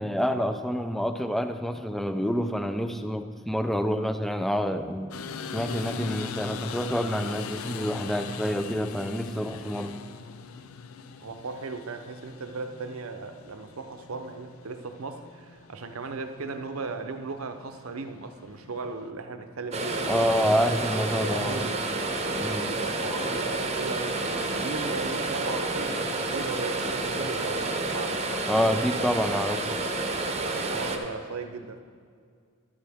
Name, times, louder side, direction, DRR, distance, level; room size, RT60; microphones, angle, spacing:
voice 1, 0.0-5.1 5.5-9.9 20.1-21.7 22.4-22.7 28.5-29.6, equal, ahead, 0.4 m, -27 dB
sound 1, 5.1-19.1, left 5 dB, 85° left, 0.5 m, -41 dB
voice 2, 11.2-20.8 21.2-21.8 22.7-28.3 28.6-28.8 30.5-31.8, right 3 dB, 85° right, 0.7 m, -37 dB
sound 2, 19.7-31.0, right 2 dB, 30° right, 0.8 m, -29 dB
11.5 x 8.9 x 3.5 m
head